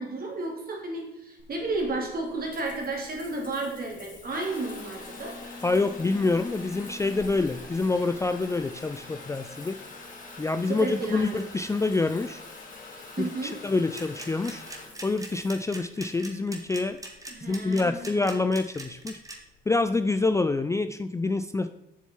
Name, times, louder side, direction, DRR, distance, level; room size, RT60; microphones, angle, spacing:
voice 1, 0.0-5.4 10.6-11.5 13.2-13.6 17.3-18.4, right 2 dB, 50° right, 0 dB, 2.9 m, -33 dB
Water tap faucet / Bathtub (filling or washing) / Trickle dribble, 1.4-20.3, left 3 dB, 40° left, 2.5 m, -45 dB
voice 2, 5.6-9.8 10.4-12.4 13.2-14.6 15.0-17.0 17.5-19.2 19.7-21.7, left 3 dB, 15° left, 10 dB, 0.4 m, -26 dB
sound 1, 13.9-19.4, right 2 dB, 15° right, 1.6 m, -41 dB
7.4 x 6.7 x 4.5 m, 0.90 s
cardioid pair, 90°, 20 cm